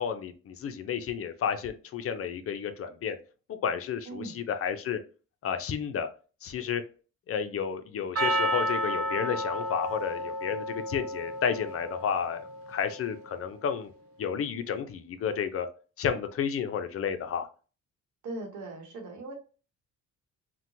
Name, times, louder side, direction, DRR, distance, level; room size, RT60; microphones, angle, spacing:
voice 1, 0.0-3.2 3.5-5.0 5.4-6.1 6.4-6.8 7.3-13.9 14.2-15.7 16.0-17.5, left 7 dB, 50° left, 8 dB, 0.5 m, -31 dB
Percussion, 8.2-12.6, equal, 50° right, 1.0 m, -31 dB
voice 2, 18.2-19.3, right 2 dB, 85° right, 2 dB, 1.0 m, -39 dB
2.8 x 2.2 x 2.6 m, 0.36 s
cardioid pair, 90°, 30 cm